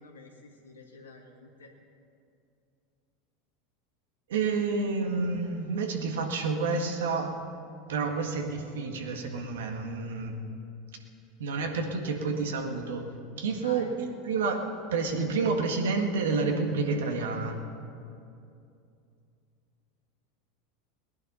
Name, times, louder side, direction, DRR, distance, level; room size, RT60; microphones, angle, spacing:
voice 1, 0.0-1.7 13.5-14.0, left 3 dB, 90° left, 1 dB, 2.0 m, -49 dB
voice 2, 4.3-7.3 7.9-10.3 11.4-13.0 13.4-13.9 14.2-14.7 14.9-17.6, right 4 dB, 75° right, 3 dB, 1.7 m, -29 dB
19.5 x 10.5 x 5.6 m, 2.6 s
hypercardioid pair, 85°, 0 cm